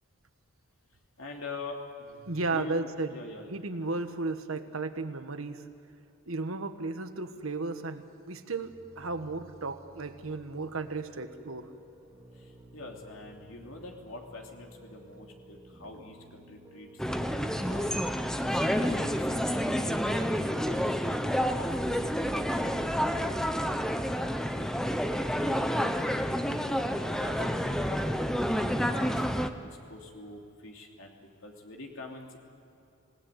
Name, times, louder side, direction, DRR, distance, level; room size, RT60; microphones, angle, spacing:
voice 1, 1.2-3.5 12.3-17.9 18.4-24.9 25.2-26.3 26.7-32.4, left 2 dB, 75° left, 1 dB, 3.1 m, -46 dB
voice 2, 2.3-3.1 3.5-5.6 6.3-11.7, right 3 dB, 80° right, 9 dB, 1.4 m, -34 dB
Piano, 8.5-22.9, right 1 dB, 15° right, 3.1 m, -54 dB
sound 1, 17.0-29.5, equal, 5° left, 0.9 m, -29 dB
27.0 x 18.5 x 9.2 m, 2.6 s
head